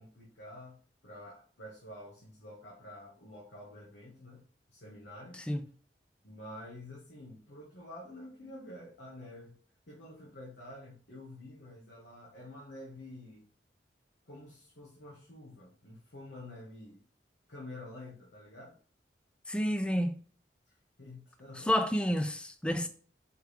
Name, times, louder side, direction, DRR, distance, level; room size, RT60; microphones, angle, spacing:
voice 1, 0.0-5.4 6.2-9.6 9.9-13.5 14.3-17.0 17.5-18.8 20.7-20.8 21.0-21.8, left 1 dB, 85° left, 1.2 m, -49 dB
voice 2, 19.5-20.2 21.6-22.9, equal, 5° left, 0.3 m, -30 dB
4.7 x 3.2 x 3.3 m
head